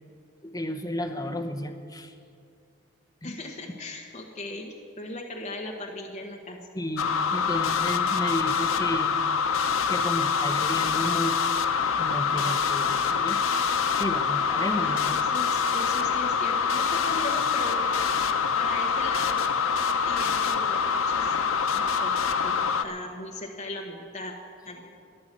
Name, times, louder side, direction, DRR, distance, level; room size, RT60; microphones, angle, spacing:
voice 1, 0.4-2.1 3.2-3.4 6.7-9.2 9.6-11.5 12.0-13.4 14.0-15.2 21.8-21.9, left 1 dB, 15° left, 5 dB, 0.8 m, -32 dB
voice 2, 3.2-6.6 14.8-17.8 18.6-19.4 20.0-24.3 24.6-24.9, left 2 dB, 35° left, 1 dB, 1.1 m, -38 dB
sound 1, 7.0-22.8, left 6 dB, 90° left, 0.7 m, -25 dB
13.0 x 10.5 x 7.6 m, 2.5 s
head